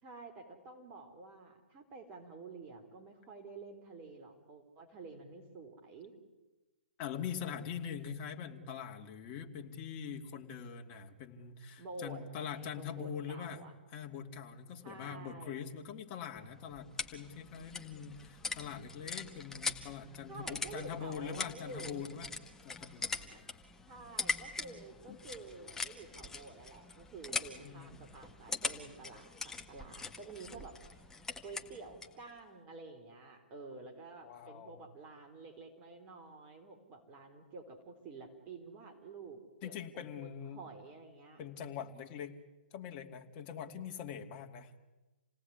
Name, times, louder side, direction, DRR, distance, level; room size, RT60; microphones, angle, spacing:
voice 1, 0.0-6.1 11.8-13.7 14.8-15.7 20.3-22.2 23.3-23.4 23.9-31.1 31.4-40.1 40.5-41.4, right 3 dB, 25° right, 4 dB, 4.0 m, -50 dB
voice 2, 7.0-13.6 13.9-22.3 22.6-23.5 23.8-23.9 25.1-25.2 27.5-28.1 34.2-34.8 39.6-40.6 41.4-42.4 42.7-44.8, left 7 dB, 30° left, 3 dB, 2.7 m, -43 dB
sound 1, 16.4-32.2, left 4 dB, 10° left, 1.8 m, -42 dB
28.5 x 18.5 x 9.7 m, 1.1 s
figure-of-eight pair, 125°, 6 cm